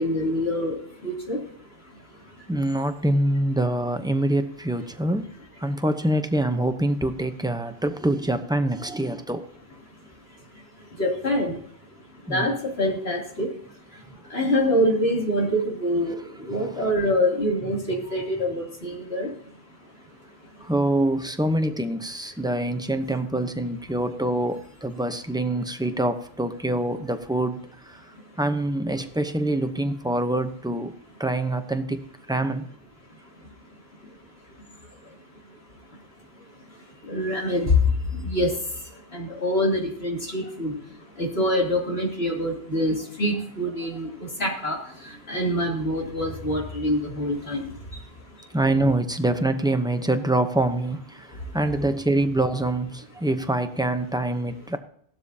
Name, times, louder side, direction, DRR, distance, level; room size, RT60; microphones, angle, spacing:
voice 1, 0.0-1.4 11.0-11.6 12.3-13.5 14.3-19.3 37.1-37.7 38.1-38.5 39.1-40.8 41.2-44.8 45.3-47.7, equal, 65° left, -2 dB, 3.3 m, -25 dB
voice 2, 2.5-5.3 5.6-9.4 12.3-12.5 20.6-27.6 28.4-30.9 31.2-32.6 48.5-51.3 51.5-54.8, right 1 dB, 5° right, 7 dB, 0.7 m, -25 dB
16.0 x 12.5 x 2.8 m, 0.64 s
omnidirectional pair, 1.1 m